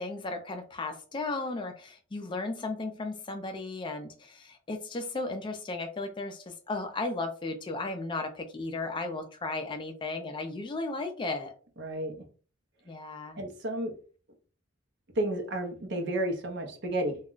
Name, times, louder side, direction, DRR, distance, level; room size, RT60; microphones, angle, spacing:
voice 1, 0.0-11.5 12.9-13.4, left 3 dB, 25° left, 6 dB, 0.4 m, -35 dB
voice 2, 11.8-12.2 13.4-13.9 15.2-17.2, right 1 dB, 60° right, 3 dB, 0.7 m, -31 dB
2.3 x 2.1 x 3.7 m, 0.39 s
head